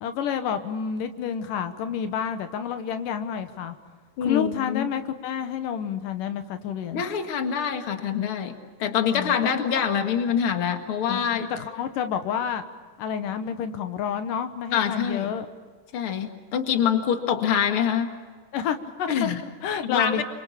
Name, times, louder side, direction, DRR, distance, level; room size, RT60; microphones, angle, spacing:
voice 1, 0.0-3.8 4.2-7.0 9.1-9.4 9.8-10.1 11.0-12.6 13.0-15.5 18.5-20.2, left 8 dB, 90° left, 8 dB, 2.9 m, -29 dB
voice 2, 4.2-4.9 6.9-8.5 8.8-11.5 14.7-15.3 15.9-18.1 19.1-19.4 19.8-20.2, left 8 dB, 45° left, 5 dB, 2.5 m, -25 dB
27.5 x 25.5 x 7.2 m, 1.5 s
omnidirectional pair, 3.7 m